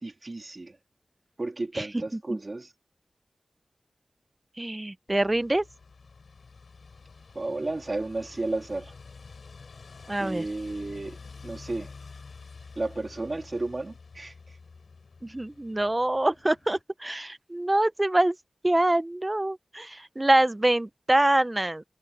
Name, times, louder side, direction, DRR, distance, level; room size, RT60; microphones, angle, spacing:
voice 1, 0.0-0.8 1.4-2.7 7.3-8.9 10.2-11.2 11.4-11.9 12.8-14.3, right 2 dB, 45° right, 2.3 m, -33 dB
voice 2, 4.6-5.6 10.1-10.4 15.2-18.3 18.6-21.8, right 1 dB, 25° right, 0.7 m, -25 dB
sound 1, 5.1-16.8, left 4 dB, 85° left, 7.3 m, -48 dB
wide cardioid pair, 65°, 0 cm